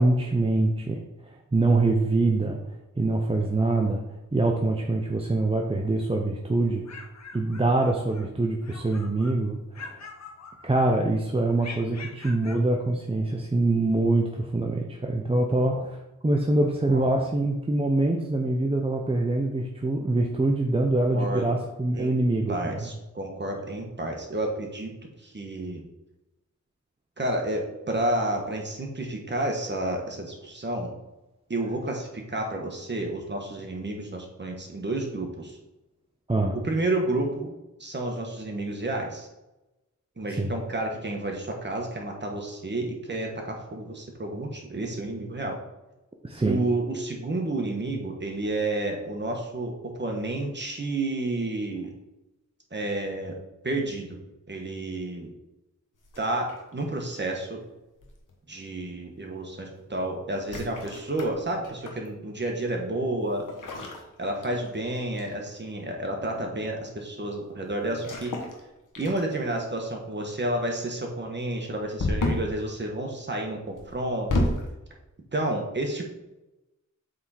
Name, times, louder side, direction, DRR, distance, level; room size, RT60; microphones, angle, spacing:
voice 1, 0.0-2.6 3.0-4.0 4.3-6.8 7.3-10.0 10.6-22.9 36.3-36.6 40.4-40.5 46.2-46.6, right 2 dB, 20° right, 0 dB, 0.7 m, -24 dB
sound 1, 6.6-8.3 8.6-9.4 9.7-11.0 11.6-12.7, left 4 dB, 60° left, 0.8 m, -44 dB
voice 2, 16.9-17.2 21.1-21.5 21.9-22.2 22.5-24.9 25.2-25.8 27.2-30.9 31.5-35.6 36.5-39.3 40.2-45.6 46.4-51.9 52.7-53.3 53.6-54.2 54.5-55.3 56.2-57.6 58.5-63.5 64.2-68.4 69.0-74.5 75.3-76.0, right 2 dB, 35° right, 1 dB, 1.4 m, -30 dB
sound 2, 56.0-56.8 58.0-58.3 60.4-62.1 63.5-64.8 65.2-65.5 67.9-68.6 68.9-69.5 72.0-72.6 73.8-74.7, left 1 dB, 85° left, 1.2 m, -31 dB
7.5 x 3.7 x 4.2 m, 0.98 s
wide cardioid pair, 95°, 31 cm